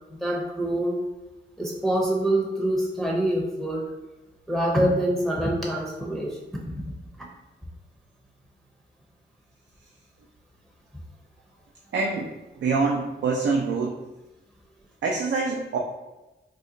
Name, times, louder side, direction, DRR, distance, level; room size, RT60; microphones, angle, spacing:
voice 1, 0.2-1.0 1.6-3.9 4.5-6.6, right 1 dB, ahead, -2 dB, 0.6 m, -25 dB
voice 2, 11.9-12.3 12.6-13.9 15.0-15.8, right 4 dB, 75° right, 0 dB, 0.4 m, -25 dB
2.7 x 2.1 x 3.8 m, 1.1 s
cardioid pair, 65°, 19 cm